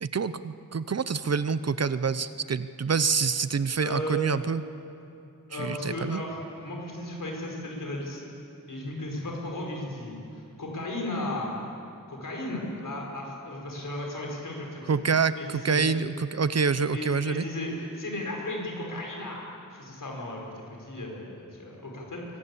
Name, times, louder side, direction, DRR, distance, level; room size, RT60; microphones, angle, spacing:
voice 1, 0.0-4.6 5.5-6.2 14.9-17.4, right 5 dB, 50° right, 14 dB, 0.7 m, -27 dB
voice 2, 3.8-4.3 5.5-8.2 8.7-11.5 12.1-15.0 15.4-15.8 16.9-22.3, left 1 dB, 70° left, -1 dB, 5.5 m, -35 dB
24.0 x 17.5 x 8.6 m, 2.7 s
wide cardioid pair, 105°, 33 cm